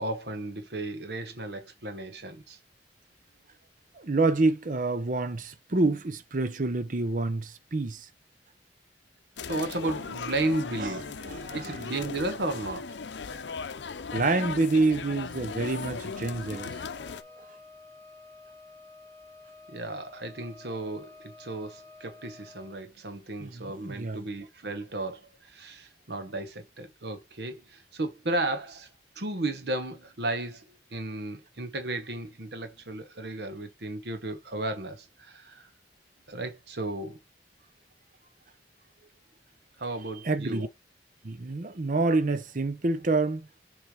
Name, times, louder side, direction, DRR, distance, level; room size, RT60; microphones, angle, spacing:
voice 1, 0.0-2.6 9.5-11.1 11.5-12.9 19.7-28.9 29.2-35.7 36.3-37.2 39.8-40.7, right 2 dB, 65° right, 1.1 m, -34 dB
voice 2, 3.9-8.1 10.8-11.0 11.3-11.8 14.1-16.7 17.4-17.5 23.4-24.2 40.2-40.7 41.2-43.5, right 3 dB, 45° right, 0.7 m, -27 dB
sound 1, 9.4-17.2, left 5 dB, 75° left, 0.6 m, -37 dB
Wind instrument woodwind instrument, 16.1-22.8, left 3 dB, 10° left, 2.0 m, -51 dB
6.3 x 3.3 x 4.8 m
head